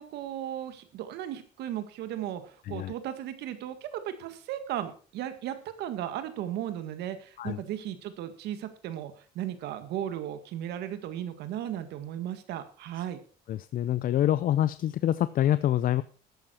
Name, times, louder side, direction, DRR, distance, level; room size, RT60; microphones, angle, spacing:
voice 1, 0.0-13.2, right 11 dB, 80° right, 10 dB, 1.8 m, -36 dB
voice 2, 13.5-16.0, left 12 dB, 55° left, 15 dB, 0.6 m, -26 dB
13.5 x 9.5 x 4.4 m, 0.39 s
cardioid pair, 110°, 17 cm